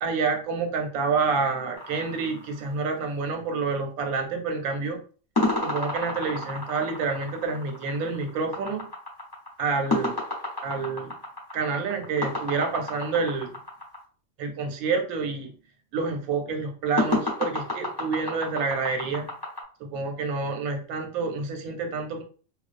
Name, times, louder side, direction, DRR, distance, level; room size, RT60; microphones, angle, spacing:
voice 1, 0.0-5.0 5.6-8.9 9.6-10.2 10.6-11.1 11.5-13.5 14.4-15.5 15.9-19.3 19.8-22.2, right 4 dB, 85° right, 3 dB, 1.1 m, -28 dB
sound 1, 1.8-3.2 5.4-14.0 17.0-19.6, left 2 dB, 25° left, 0.5 m, -30 dB
2.3 x 2.2 x 2.4 m, 0.40 s
omnidirectional pair, 1.5 m